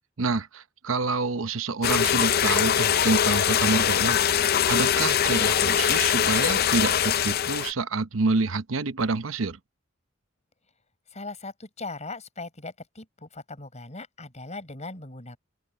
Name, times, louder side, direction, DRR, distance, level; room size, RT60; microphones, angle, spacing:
voice 1, 0.2-4.2 4.7-9.6, right 3 dB, 90° right, 0.9 m, -27 dB
sound 1, 1.8-7.7, left 9 dB, 50° left, 0.5 m, -22 dB
voice 2, 11.1-15.4, left 3 dB, 35° left, 5.0 m, -39 dB
open air
head